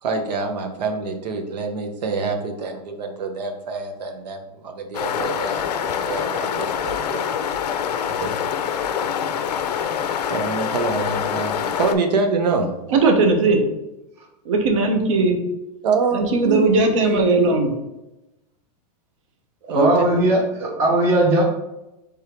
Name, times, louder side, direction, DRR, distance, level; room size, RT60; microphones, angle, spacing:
voice 1, 0.0-7.3 8.1-8.4 10.3-12.7 15.8-16.7 17.0-17.5 19.7-19.9, right 4 dB, 90° right, 4 dB, 0.9 m, -26 dB
sound 1, 4.9-11.9, left 8 dB, 80° left, 0.5 m, -25 dB
voice 2, 12.9-13.6 14.5-15.4 16.1-17.7 19.6-19.7, right 3 dB, 50° right, 5 dB, 0.8 m, -18 dB
voice 3, 19.7-21.4, right 1 dB, 10° right, -1 dB, 0.5 m, -18 dB
3.5 x 3.4 x 4.4 m, 0.94 s
supercardioid pair, 175°, 21 cm